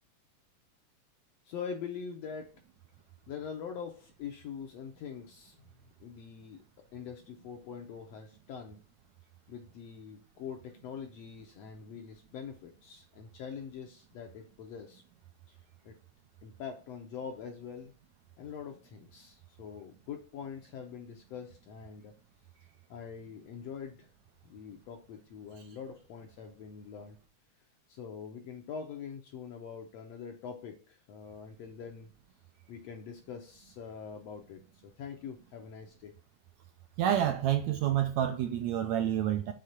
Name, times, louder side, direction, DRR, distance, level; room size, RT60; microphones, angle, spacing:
voice 1, 1.4-2.5 3.3-5.7 6.0-6.6 6.9-8.8 9.5-15.0 15.5-15.6 15.8-15.9 16.4-17.9 18.4-22.1 22.9-24.1 24.4-27.2 27.9-32.1 32.7-36.1, left 6 dB, 75° left, 1.6 m, -44 dB
voice 2, 37.0-39.5, right 11 dB, 80° right, 1.7 m, -28 dB
6.6 x 3.4 x 5.7 m
omnidirectional pair, 3.7 m